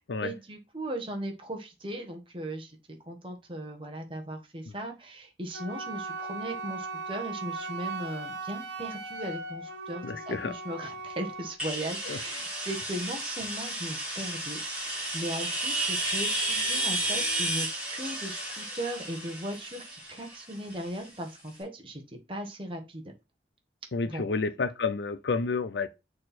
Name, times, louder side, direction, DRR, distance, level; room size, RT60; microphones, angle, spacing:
voice 1, 0.2-2.8 3.0-14.6 14.9-23.0 24.1-24.3, right 1 dB, 30° right, 1.5 m, -38 dB
Wind instrument woodwind instrument, 5.5-11.6, right 3 dB, 70° right, 1.1 m, -38 dB
voice 2, 10.0-10.5 12.1-12.2 23.9-25.9, left 4 dB, 80° left, 0.6 m, -30 dB
sound 1, 11.6-21.2, right 1 dB, 5° right, 4.1 m, -32 dB
6.5 x 4.4 x 4.2 m
head